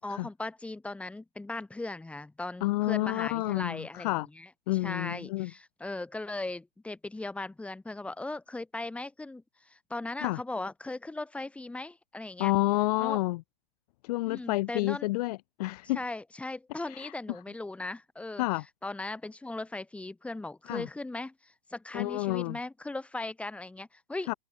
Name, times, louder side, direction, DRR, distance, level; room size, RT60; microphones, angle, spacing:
voice 1, 0.0-12.5 13.0-13.2 14.3-15.1 15.9-18.4 18.8-24.4, left 2 dB, 5° left, 7.0 m, -38 dB
voice 2, 2.6-4.3 4.7-5.5 10.2-10.4 12.4-13.4 14.0-16.0 16.9-17.1 18.4-18.6 20.7-20.9 21.9-22.6 24.3-24.4, left 20 dB, 40° left, 2.4 m, -29 dB
hypercardioid pair, 150°, 31 cm